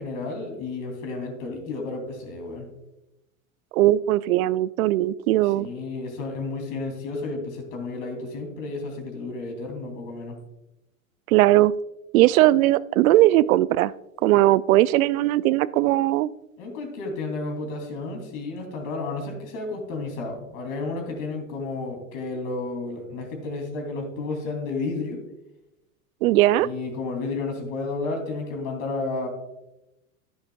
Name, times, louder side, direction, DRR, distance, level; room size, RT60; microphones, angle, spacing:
voice 1, 0.0-2.7 5.4-10.4 16.6-25.2 26.6-29.3, left 3 dB, 55° left, 3 dB, 3.0 m, -32 dB
voice 2, 3.7-5.7 11.3-11.7 12.1-13.9 14.2-16.3 26.2-26.7, right 15 dB, 75° right, 19 dB, 0.5 m, -19 dB
10.5 x 10.0 x 2.3 m, 0.93 s
hypercardioid pair, 115°, 42 cm